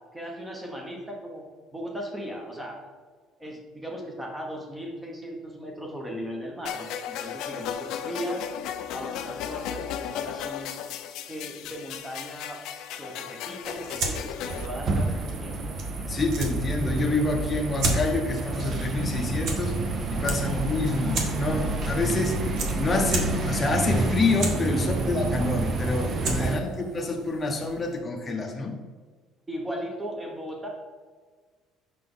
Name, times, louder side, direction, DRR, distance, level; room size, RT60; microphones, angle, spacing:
voice 1, 0.1-2.8 3.4-8.4 8.9-10.7 11.3-12.6 13.0-15.6 20.2-20.6 24.7-25.2 26.4-26.9 29.5-30.7, equal, 10° right, 0 dB, 1.0 m, -37 dB
sound 1, 6.6-14.7, left 9 dB, 60° left, 0.5 m, -35 dB
sound 2, 13.6-28.0, right 3 dB, 50° right, 1.1 m, -36 dB
sound 3, 14.5-26.6, right 2 dB, 30° right, 0.6 m, -29 dB
voice 2, 16.1-19.7 20.1-22.4 22.8-28.7, left 3 dB, 15° left, 1 dB, 0.9 m, -27 dB
6.0 x 5.8 x 3.8 m, 1.5 s
cardioid pair, 175°, 0 cm